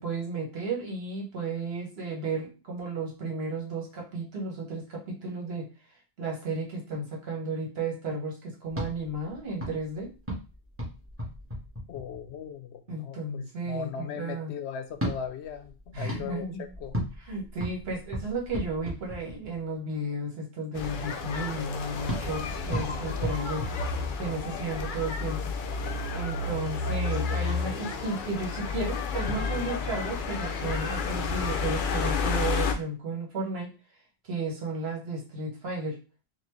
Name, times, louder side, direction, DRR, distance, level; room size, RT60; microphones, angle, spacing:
voice 1, 0.0-5.7 6.2-10.1 12.9-14.5 15.9-16.7 17.2-23.7 24.2-25.5 26.1-33.7 34.2-36.0, right 2 dB, 65° right, -1 dB, 1.4 m, -33 dB
sound 1, 8.7-12.5 14.9-19.7 22.1-24.5, equal, 10° right, 1.2 m, -37 dB
voice 2, 11.9-16.5 16.8-16.9, left 8 dB, 85° left, 7 dB, 0.9 m, -38 dB
sound 2, 20.7-32.7, left 4 dB, 60° left, 0.6 m, -31 dB
4.0 x 2.4 x 3.1 m, 0.32 s
omnidirectional pair, 1.1 m